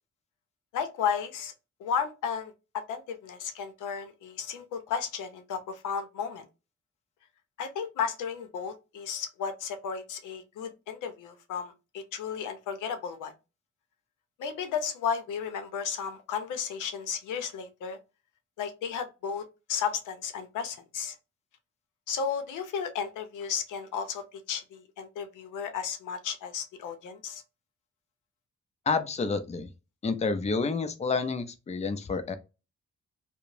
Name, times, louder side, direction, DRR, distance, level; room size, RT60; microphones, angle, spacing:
voice 1, 0.7-1.5 1.8-6.4 7.6-13.3 14.4-18.0 18.6-21.2 22.1-27.4, left 7 dB, 85° left, 0.6 m, -34 dB
voice 2, 28.9-29.7 30.0-32.4, left 4 dB, 20° left, 0.5 m, -29 dB
2.8 x 2.0 x 2.6 m
cardioid pair, 65°, 30 cm